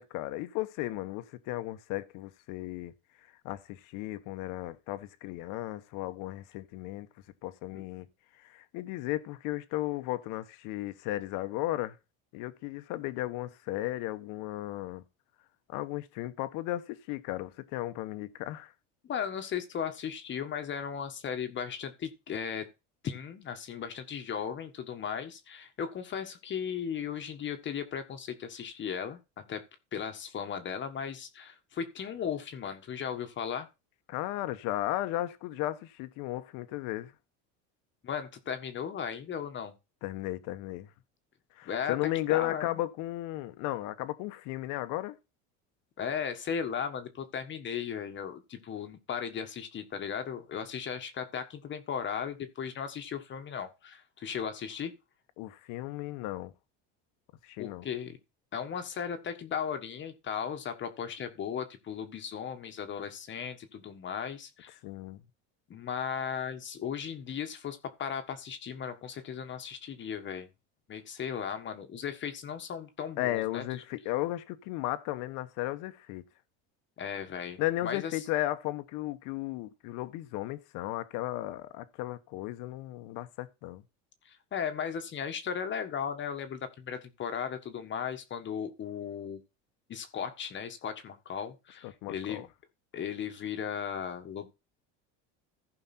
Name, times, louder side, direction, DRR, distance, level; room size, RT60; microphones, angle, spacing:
voice 1, 0.0-2.9 3.4-7.1 7.4-8.1 8.4-12.0 12.3-15.0 15.7-18.7 34.1-37.1 40.0-40.9 41.6-45.2 55.4-56.5 57.4-57.8 64.8-65.2 73.2-76.2 77.6-83.8 91.8-92.5, left 16 dB, 65° left, 1.2 m, -35 dB
voice 2, 19.0-22.7 23.0-29.6 29.9-33.7 38.0-39.7 41.6-42.8 46.0-54.9 57.6-58.2 58.5-64.7 65.7-70.5 70.9-73.8 77.0-78.2 84.2-89.4 89.9-92.4 92.9-94.5, left 7 dB, 35° left, 1.5 m, -36 dB
15.0 x 5.4 x 4.3 m
supercardioid pair, 130°, 34 cm